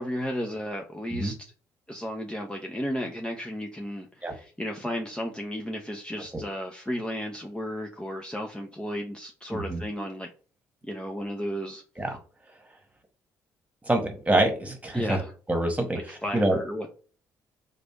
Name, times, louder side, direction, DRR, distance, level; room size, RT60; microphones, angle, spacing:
voice 1, 0.0-1.3 1.9-10.3 10.8-11.8 14.9-15.3 16.1-16.9, equal, 10° left, 1 dB, 0.7 m, -33 dB
voice 2, 9.5-9.8 12.0-12.2 13.8-15.2 15.5-16.6, right 1 dB, 15° right, 4 dB, 1.5 m, -26 dB
3.3 x 2.5 x 4.5 m, 0.39 s
hypercardioid pair, 45°, 9 cm